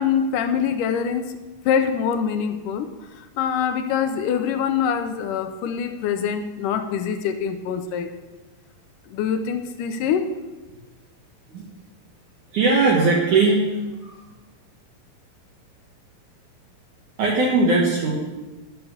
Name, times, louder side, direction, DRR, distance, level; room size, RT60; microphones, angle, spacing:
voice 1, 0.0-1.3 1.7-2.9 3.2-8.1 9.1-10.3, left 7 dB, 75° left, 8 dB, 2.0 m, -24 dB
voice 2, 12.5-14.2 17.2-18.1, right 3 dB, 60° right, -3 dB, 2.6 m, -19 dB
12.0 x 6.7 x 7.0 m, 1.2 s
omnidirectional pair, 4.2 m